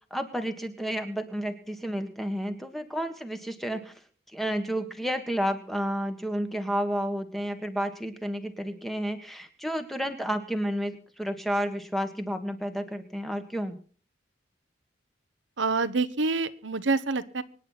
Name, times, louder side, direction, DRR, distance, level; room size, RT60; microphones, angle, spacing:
voice 1, 0.1-3.9 4.3-13.7, equal, ahead, 7 dB, 1.6 m, -31 dB
voice 2, 15.6-17.4, right 3 dB, 80° right, 12 dB, 1.0 m, -27 dB
25.0 x 10.0 x 4.1 m, 0.42 s
head